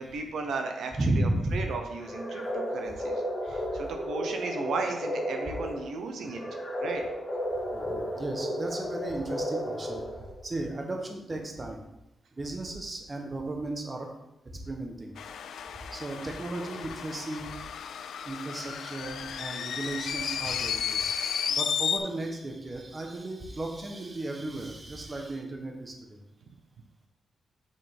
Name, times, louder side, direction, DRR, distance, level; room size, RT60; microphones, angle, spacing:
voice 1, 0.0-7.0, right 4 dB, 80° right, 4 dB, 0.9 m, -35 dB
voice 2, 1.0-1.6 7.7-10.0 10.4-11.8 12.3-14.1 14.7-15.1 15.9-17.5 18.2-21.1 21.4-26.2, right 2 dB, 25° right, 2 dB, 1.0 m, -34 dB
sound 1, 2.0-10.4, equal, 20° left, 2.1 m, -33 dB
sound 2, 15.2-22.0, left 7 dB, 80° left, 0.4 m, -33 dB
6.7 x 6.2 x 3.5 m, 0.89 s
wide cardioid pair, 145°, 0 cm